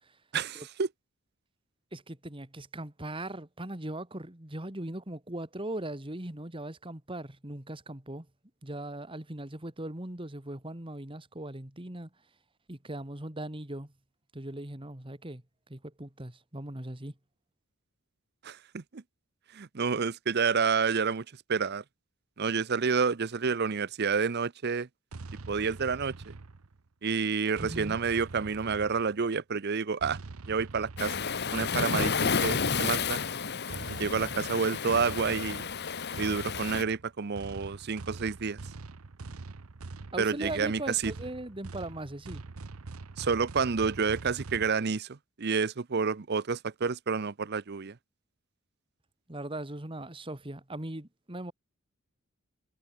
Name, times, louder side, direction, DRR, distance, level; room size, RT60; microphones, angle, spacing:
voice 1, 0.3-0.9 18.4-19.0 19.5-21.8 22.4-24.9 25.5-26.3 27.0-30.2 30.5-31.1 31.5-33.2 34.0-35.7 36.2-38.6 40.2-41.1 43.2-48.0, right 5 dB, 50° right, 0.6 m, -29 dB
voice 2, 1.9-8.3 8.6-12.1 12.7-13.9 14.3-15.4 15.7-17.1 27.6-28.0 40.1-42.4 49.3-51.5, right 1 dB, 25° right, 1.9 m, -39 dB
sound 1, 25.1-26.9 27.6-29.3 30.0-31.6 32.4-44.7, right 3 dB, 75° right, 0.9 m, -44 dB
Waves surf, 31.0-36.8, left 5 dB, 50° left, 1.2 m, -31 dB
head